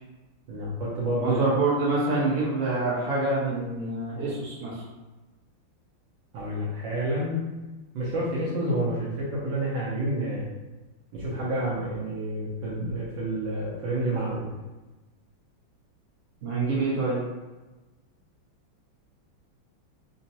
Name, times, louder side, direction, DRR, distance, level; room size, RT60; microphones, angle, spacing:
voice 1, 0.5-1.4 6.3-7.4 7.9-10.5 11.1-14.5, right 1 dB, 70° right, -6 dB, 1.3 m, -29 dB
voice 2, 1.2-4.7 16.4-17.2, right 3 dB, 40° right, -7 dB, 0.9 m, -26 dB
4.0 x 2.2 x 2.7 m, 1.1 s
omnidirectional pair, 2.3 m